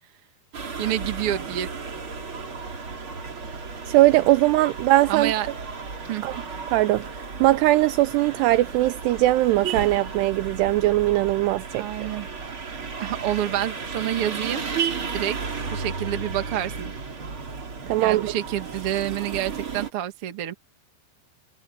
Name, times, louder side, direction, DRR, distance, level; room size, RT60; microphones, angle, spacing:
sound 1, 0.5-19.9, right 5 dB, 30° right, 3.3 m, -34 dB
voice 1, 0.8-1.7 5.1-5.5 6.1-6.2 11.7-12.3 13.0-14.6 15.1-15.4 15.7-16.9 18.0-20.5, right 12 dB, 50° right, 1.8 m, -28 dB
voice 2, 3.9-5.3 6.2-6.4 6.7-7.1 7.4-11.9 17.9-18.3, right 17 dB, 80° right, 2.5 m, -20 dB
omnidirectional pair, 5.1 m